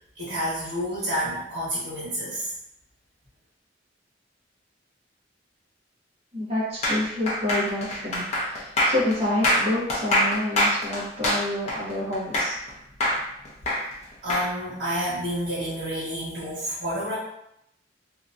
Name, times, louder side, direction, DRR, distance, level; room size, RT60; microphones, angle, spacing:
voice 1, 0.2-2.5 14.2-17.2, equal, 75° right, -9 dB, 1.1 m, -29 dB
voice 2, 6.3-12.6, left 1 dB, 35° right, -6 dB, 0.9 m, -28 dB
sound 1, 6.8-12.7 13.0-14.5, equal, 35° left, 0.6 m, -24 dB
2.8 x 2.2 x 2.5 m, 0.77 s
head